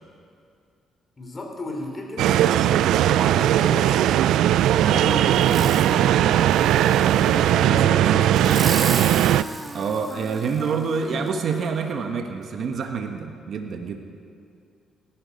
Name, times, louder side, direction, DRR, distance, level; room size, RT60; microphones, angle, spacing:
voice 1, 1.2-4.1 4.8-8.8, left 2 dB, 30° left, 2 dB, 3.3 m, -34 dB
sound 1, 2.2-9.4, right 12 dB, 85° right, 0.3 m, -19 dB
Wind instrument woodwind instrument, 5.0-12.4, equal, ahead, 0.6 m, -39 dB
Fireworks, 5.3-6.0 6.5-7.5 8.3-10.7 11.3-11.4, right 3 dB, 25° right, 1.3 m, -34 dB
voice 2, 9.7-14.0, right 5 dB, 60° right, 5 dB, 1.3 m, -27 dB
18.0 x 13.5 x 5.3 m, 2.4 s
cardioid pair, 90°, 0 cm